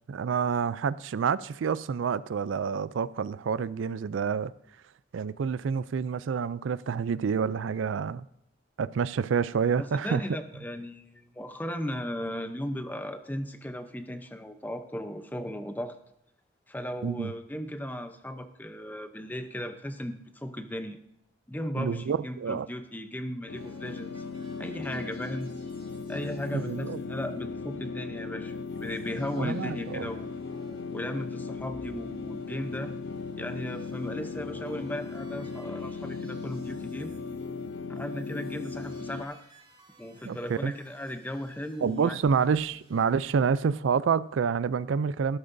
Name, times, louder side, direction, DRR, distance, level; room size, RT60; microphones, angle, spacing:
voice 1, 0.1-4.5 5.1-8.2 8.8-10.2 17.0-17.3 21.8-22.7 24.9-25.0 26.7-27.0 29.4-30.1 40.2-40.7 41.8-45.4, right 6 dB, 85° right, 0.4 m, -28 dB
voice 2, 9.8-16.0 16.7-21.0 21.5-24.2 24.6-25.5 26.1-30.4 30.9-32.9 33.4-37.1 37.9-39.4 40.0-42.2, equal, 10° left, 0.7 m, -36 dB
sound 1, 23.5-39.2, left 4 dB, 65° left, 0.4 m, -37 dB
sound 2, 23.5-27.9 28.2-28.3 28.5-43.4, right 1 dB, 25° right, 3.3 m, -58 dB
13.5 x 13.0 x 2.6 m
head